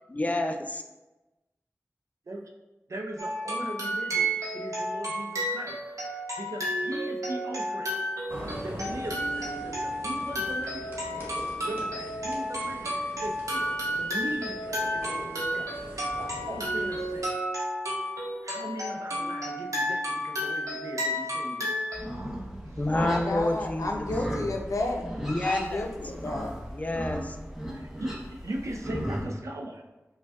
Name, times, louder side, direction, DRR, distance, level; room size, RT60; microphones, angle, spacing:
voice 1, 0.1-0.8 22.6-24.1 25.2-25.9 26.7-27.4, left 1 dB, 25° left, 5 dB, 0.4 m, -29 dB
voice 2, 2.9-8.0 8.6-10.9 11.6-17.3 18.4-21.8 22.7-22.9 27.7-29.8, right 1 dB, 70° right, 2 dB, 0.4 m, -39 dB
sound 1, 3.2-22.0, equal, 85° right, 0.8 m, -32 dB
sound 2, 8.3-17.2, equal, 40° right, 1.2 m, -43 dB
Livestock farm animals working animals, 21.9-29.2, equal, 10° right, 0.7 m, -36 dB
voice 3, 22.8-25.1 25.4-26.5, left 2 dB, 85° left, 1 dB, 0.5 m, -31 dB
5.0 x 2.2 x 2.3 m, 1.1 s
wide cardioid pair, 55°, 5 cm